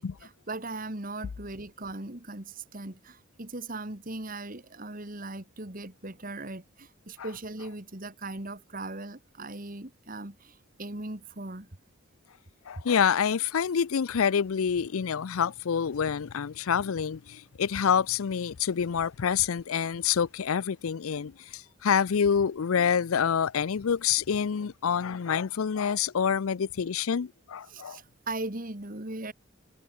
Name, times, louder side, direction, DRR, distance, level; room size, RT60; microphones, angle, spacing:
voice 1, 0.0-11.7 27.7-29.3, right 2 dB, 40° right, 2.2 m, -39 dB
voice 2, 12.7-28.0, left 7 dB, 80° left, 0.5 m, -27 dB
head